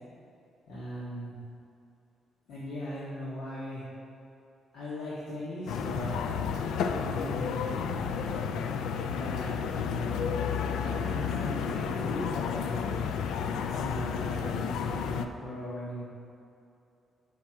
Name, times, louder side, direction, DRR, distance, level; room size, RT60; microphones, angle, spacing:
voice 1, 0.7-1.3 2.5-3.9 4.7-6.3 6.8-8.5 9.1-13.1 13.6-16.0, left 1 dB, 70° left, -8 dB, 1.5 m, -39 dB
sound 1, 5.7-15.3, left 6 dB, 90° left, 0.4 m, -31 dB
6.1 x 5.8 x 5.7 m, 2.7 s
cardioid pair, 180°, 0 cm